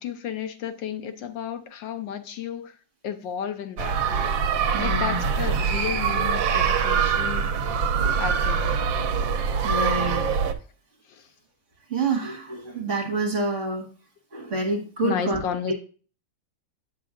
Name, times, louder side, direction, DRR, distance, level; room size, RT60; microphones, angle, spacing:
voice 1, 0.0-2.8 3.0-4.3 4.8-7.8 8.2-8.7 11.0-11.3 15.0-15.7, left 8 dB, 75° left, 8 dB, 1.5 m, -33 dB
sound 1, 3.8-10.5, right 6 dB, 80° right, 1.4 m, -24 dB
voice 2, 4.7-5.2 9.1-9.3 9.6-10.3 11.9-13.9 14.3-15.4 15.7-15.8, right 2 dB, 40° right, 2 dB, 1.9 m, -27 dB
8.2 x 7.4 x 2.5 m, 0.38 s
omnidirectional pair, 2.0 m